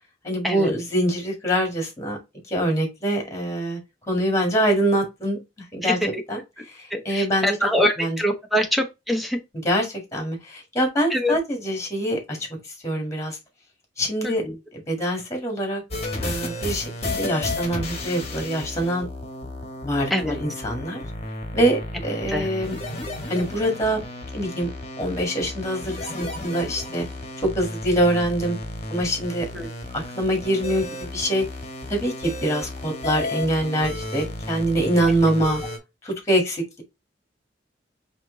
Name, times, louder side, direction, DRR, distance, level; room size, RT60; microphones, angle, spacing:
voice 1, 0.2-2.2 2.5-3.8 4.1-5.4 5.7-6.0 6.3-6.4 6.7-7.6 8.0-8.2 9.6-13.4 14.0-14.4 14.7-15.8 16.2-19.1 19.8-21.0 21.5-22.8 23.3-24.0 24.3-24.7 25.0-27.1 27.6-28.6 28.9-29.5 29.9-31.5 31.9-35.6 36.0-36.8, right 1 dB, 15° left, 1.8 m, -24 dB
voice 2, 5.8-6.2 6.9-9.4 11.1-11.4 14.2-14.5 20.1-20.4 22.3-22.5 29.5-29.7, left 1 dB, ahead, 0.9 m, -24 dB
sound 1, 15.9-35.8, left 2 dB, 35° left, 1.2 m, -33 dB
4.3 x 2.9 x 3.8 m
head